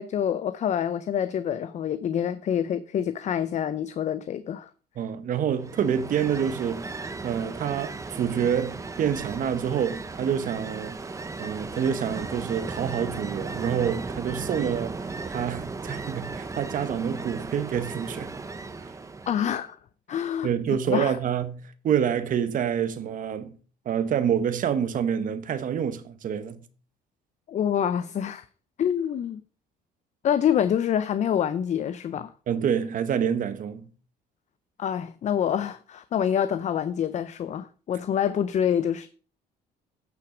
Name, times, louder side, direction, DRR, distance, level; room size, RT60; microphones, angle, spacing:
voice 1, 0.0-4.7 19.3-19.8 20.1-20.5 20.9-21.2 27.5-28.4 28.8-29.4 30.2-32.3 34.8-39.1, left 9 dB, 45° left, 0.5 m, -26 dB
voice 2, 5.0-6.9 7.2-18.3 20.1-23.6 23.8-26.6 32.5-33.9, right 8 dB, 50° right, 1.1 m, -27 dB
Ocean, 5.6-19.7, right 3 dB, 20° right, 0.9 m, -36 dB
9.3 x 5.8 x 4.9 m
cardioid pair, 110°, 17 cm